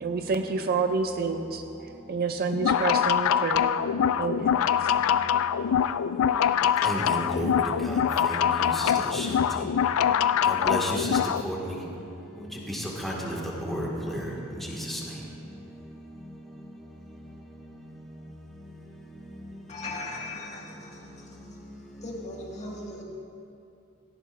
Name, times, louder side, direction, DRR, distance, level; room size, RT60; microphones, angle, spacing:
voice 1, 0.0-1.6 2.1-3.7 4.2-4.6, right 4 dB, 45° right, 6 dB, 0.5 m, -28 dB
sound 1, 2.5-11.4, left 8 dB, 65° left, 0.3 m, -24 dB
voice 2, 6.8-7.5 7.8-9.7 10.5-11.2 11.4-11.8 12.7-13.4 13.6-14.3 14.6-15.0, equal, ahead, -4 dB, 2.0 m, -32 dB
voice 3, 19.7-21.5 22.0-23.0, left 2 dB, 30° left, -3 dB, 2.0 m, -39 dB
17.5 x 14.5 x 2.6 m, 2.7 s
head